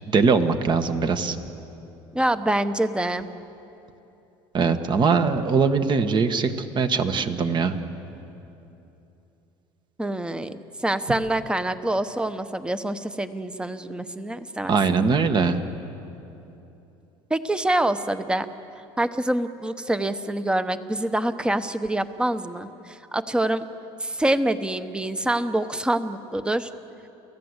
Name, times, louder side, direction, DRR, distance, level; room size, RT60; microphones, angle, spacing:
voice 1, 0.1-1.4 4.5-7.7 14.7-15.6, right 5 dB, 40° right, 8 dB, 1.6 m, -21 dB
voice 2, 2.1-3.3 10.0-14.7 17.3-18.5 19.0-23.6 24.0-26.7, right 1 dB, 10° right, 11 dB, 1.1 m, -26 dB
29.0 x 15.5 x 8.2 m, 2.9 s
supercardioid pair, 100°, 12 cm